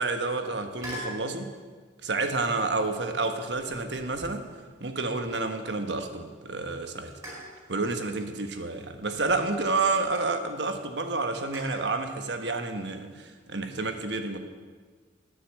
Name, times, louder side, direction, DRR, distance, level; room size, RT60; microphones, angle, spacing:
voice 1, 0.0-1.5 2.0-4.5 4.8-7.2 7.7-14.4, right 3 dB, 70° right, 7 dB, 1.2 m, -29 dB
sound 1, 0.8-1.2 2.4-2.7 3.4-5.7 6.1-6.2 7.2-7.7 8.8-10.2 11.5-12.0, equal, 20° right, 4.7 m, -44 dB
9.8 x 9.7 x 7.4 m, 1.5 s
head